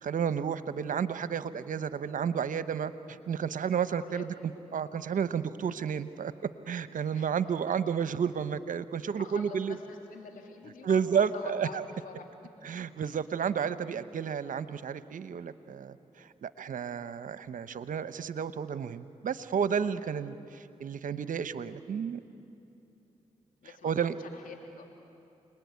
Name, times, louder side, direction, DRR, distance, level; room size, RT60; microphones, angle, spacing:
voice 1, 0.0-4.3 4.7-6.3 6.7-9.7 10.8-11.8 12.6-22.2 23.8-24.2, right 7 dB, 70° right, 13 dB, 1.0 m, -31 dB
voice 2, 9.1-12.2 13.0-13.2 23.6-24.9, left 5 dB, 80° left, 3 dB, 3.1 m, -46 dB
29.0 x 20.5 x 9.6 m, 2.8 s
supercardioid pair, 40°, 14 cm